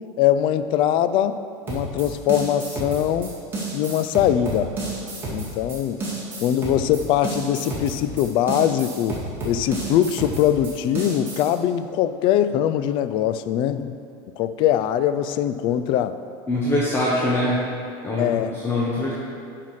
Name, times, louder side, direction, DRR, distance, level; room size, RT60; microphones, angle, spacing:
voice 1, 0.2-1.4 1.7-3.3 3.7-4.7 5.3-6.0 6.4-14.0 14.4-16.2 18.2-18.5, left 10 dB, 45° left, 12 dB, 0.4 m, -22 dB
sound 1, 1.7-11.5, right 2 dB, 20° right, 2.1 m, -31 dB
voice 2, 16.5-17.6 18.0-18.3 18.6-19.1, left 1 dB, 20° left, -6 dB, 1.0 m, -22 dB
8.2 x 5.8 x 4.9 m, 2.4 s
cardioid pair, 150°, 11 cm